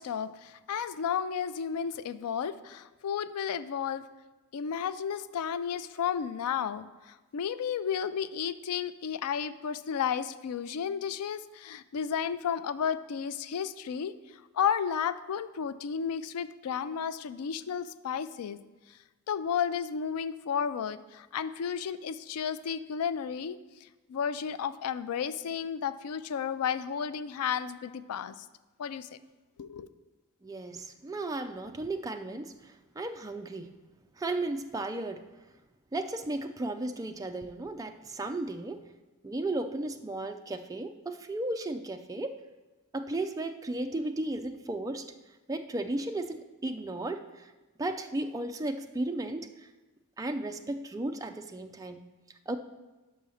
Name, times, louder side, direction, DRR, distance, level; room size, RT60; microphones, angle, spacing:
voice 1, 0.0-4.1 4.5-14.1 14.5-18.6 19.3-28.4 28.8-29.2 29.6-29.9, left 7 dB, 85° left, 15 dB, 0.4 m, -33 dB
voice 2, 30.4-33.7 34.2-35.2 35.9-38.8 39.2-42.4 42.9-45.1 45.5-47.5 47.8-49.7 50.2-52.0 52.5-52.6, right 2 dB, 15° right, 6 dB, 0.3 m, -35 dB
5.6 x 5.5 x 6.2 m, 1.2 s
head